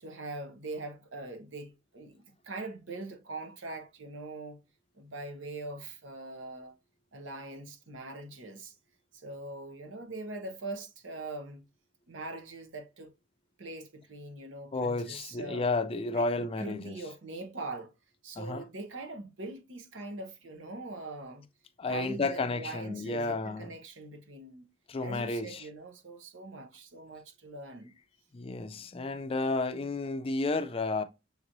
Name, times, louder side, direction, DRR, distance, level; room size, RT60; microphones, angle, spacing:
voice 1, 0.0-4.6 4.9-6.7 7.1-8.7 9.1-11.6 12.1-13.1 13.6-15.7 16.1-17.9 18.2-21.5 21.9-24.6 25.0-27.9, right 2 dB, 80° right, 0.9 m, -42 dB
voice 2, 14.7-17.0 18.4-18.6 21.8-23.7 24.9-25.7 28.3-31.0, left 3 dB, 30° left, 0.4 m, -32 dB
6.6 x 3.0 x 2.6 m
head